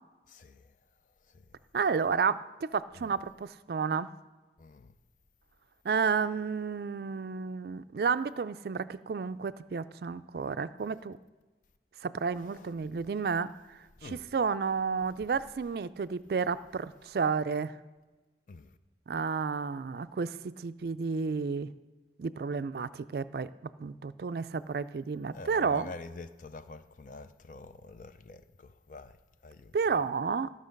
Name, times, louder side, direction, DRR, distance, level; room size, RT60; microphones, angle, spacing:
voice 1, 0.3-0.6 4.6-4.9 12.5-12.6 14.0-14.2 18.5-18.7 25.3-29.1 29.4-29.7, left 3 dB, 45° left, 0.5 m, -46 dB
voice 2, 1.7-4.1 5.8-11.2 12.0-13.5 14.0-17.8 19.1-21.7 22.2-23.5 23.8-25.9 29.7-30.5, right 5 dB, 60° right, 0.4 m, -31 dB
14.5 x 6.4 x 5.2 m
head